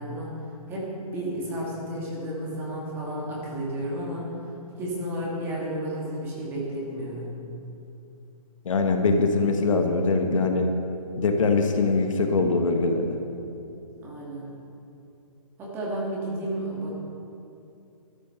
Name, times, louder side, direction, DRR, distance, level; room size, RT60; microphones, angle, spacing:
voice 1, 0.0-4.5 4.8-7.3 14.0-14.5 15.6-16.9, right 1 dB, 10° right, -5 dB, 2.4 m, -32 dB
voice 2, 8.6-10.7 11.2-13.2, left 3 dB, 55° left, 4 dB, 1.5 m, -22 dB
13.0 x 12.0 x 5.8 m, 2.7 s
hypercardioid pair, 165°, 19 cm